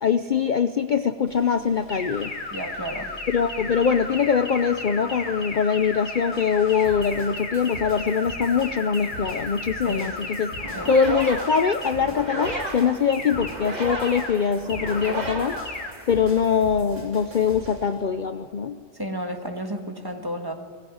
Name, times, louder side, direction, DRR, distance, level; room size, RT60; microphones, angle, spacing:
voice 1, 0.0-2.3 3.3-10.5 10.9-15.6 16.1-18.8, left 6 dB, 45° left, 9 dB, 0.7 m, -23 dB
sound 1, 1.3-18.0, equal, 80° right, 4.5 m, -44 dB
sound 2, 1.9-11.9 12.3-12.7 13.1-13.5 13.9-14.3 14.7-15.1 15.5-15.9, left 2 dB, 65° left, 2.6 m, -34 dB
voice 2, 2.5-3.1 9.8-10.2 10.7-10.9 18.9-20.5, equal, 20° right, 4 dB, 1.8 m, -32 dB
sound 3, 10.6-16.4, right 2 dB, 35° right, 2.4 m, -34 dB
20.5 x 16.0 x 9.6 m, 2.2 s
omnidirectional pair, 1.2 m